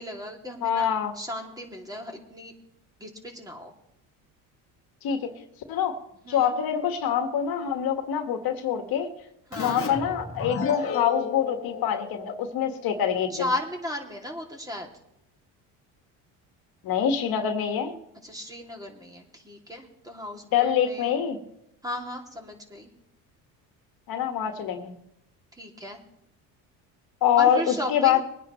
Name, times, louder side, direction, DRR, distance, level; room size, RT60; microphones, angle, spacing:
voice 1, 0.0-0.9 1.1-2.5 3.0-3.7 6.2-6.5 9.5-9.8 13.3-14.9 18.2-21.2 21.8-22.9 25.6-26.0 27.4-28.2, left 1 dB, 10° right, 1 dB, 2.7 m, -35 dB
voice 2, 0.6-1.1 5.0-6.0 6.3-9.1 9.6-13.5 16.8-17.9 20.5-21.4 24.1-24.9 27.2-28.2, left 9 dB, 60° left, 5 dB, 1.8 m, -25 dB
Keyboard (musical), 9.5-12.9, left 6 dB, 35° left, 1.9 m, -34 dB
22.0 x 9.9 x 3.2 m, 0.78 s
supercardioid pair, 90°, 40 cm